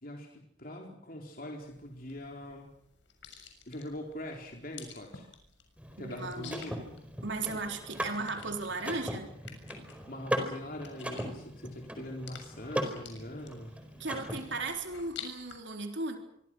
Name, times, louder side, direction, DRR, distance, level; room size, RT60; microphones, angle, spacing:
voice 1, 0.0-2.7 3.7-5.3 6.0-6.9 10.1-13.7, left 1 dB, 45° left, 1 dB, 4.0 m, -42 dB
sound 1, 1.6-15.6, left 6 dB, 65° left, 6.7 m, -52 dB
Car / Mechanisms, 5.8-14.7, equal, 5° right, 4.6 m, -39 dB
voice 2, 6.0-6.6 7.2-9.3 14.0-16.2, right 3 dB, 65° right, 4 dB, 3.8 m, -36 dB
27.5 x 24.0 x 6.2 m, 0.72 s
head